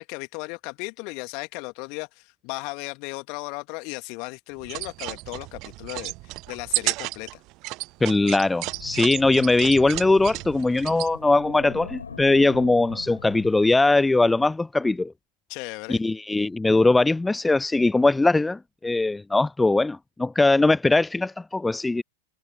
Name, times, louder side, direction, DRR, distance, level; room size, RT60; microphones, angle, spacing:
voice 1, 0.0-7.3 15.5-16.0, left 31 dB, 45° left, 2.3 m, -36 dB
sound 1, 4.6-11.1, right 21 dB, 40° right, 0.6 m, -33 dB
voice 2, 8.0-15.1 15.9-22.0, left 2 dB, 10° left, 0.4 m, -21 dB
Wind, 8.6-14.5, left 5 dB, 75° left, 4.1 m, -43 dB
figure-of-eight pair, 90°, 0 cm